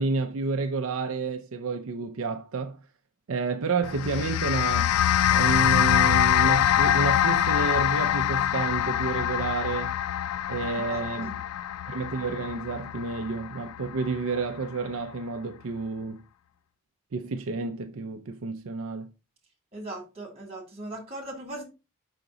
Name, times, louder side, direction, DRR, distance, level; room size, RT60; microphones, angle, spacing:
voice 1, 0.0-2.8 3.3-5.0 5.3-9.9 10.5-11.4 11.9-16.2 17.1-19.1, right 4 dB, 65° right, 0.5 m, -30 dB
sound 1, 3.8-14.4, left 11 dB, 85° left, 0.3 m, -24 dB
voice 2, 10.9-11.3 19.7-21.6, right 1 dB, 30° right, 2.6 m, -39 dB
5.8 x 4.9 x 3.8 m
head